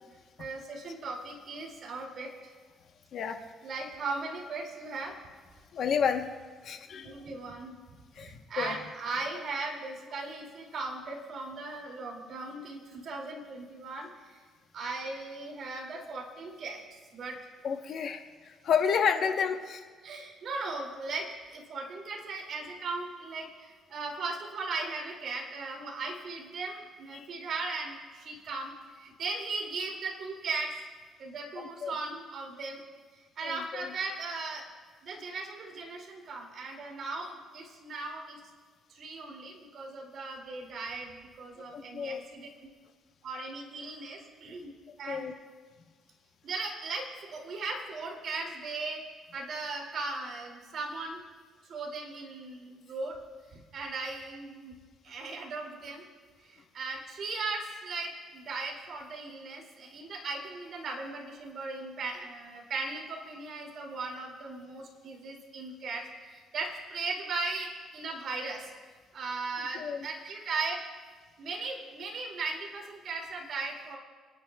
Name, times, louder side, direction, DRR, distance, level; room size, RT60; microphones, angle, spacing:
voice 1, 0.4-2.5 3.6-5.2 7.0-7.8 8.1-14.4 14.7-17.4 20.0-30.7 31.2-32.8 33.2-34.6 35.0-38.4 38.9-42.5 43.2-44.7 45.0-45.3 46.4-49.0 49.3-51.2 51.7-53.2 53.5-54.7 55.0-56.1 56.4-68.7 69.1-70.8 71.4-74.0, right 3 dB, 55° right, 0 dB, 2.4 m, -38 dB
voice 2, 5.7-6.2 6.6-7.1 8.2-8.8 17.6-19.8 27.1-27.3 31.8-31.9 33.4-33.9 41.6-42.2 45.1-45.3 69.7-70.1, left 7 dB, 55° left, 6 dB, 1.0 m, -30 dB
29.5 x 9.9 x 2.3 m, 1.5 s
cardioid pair, 130°, 0 cm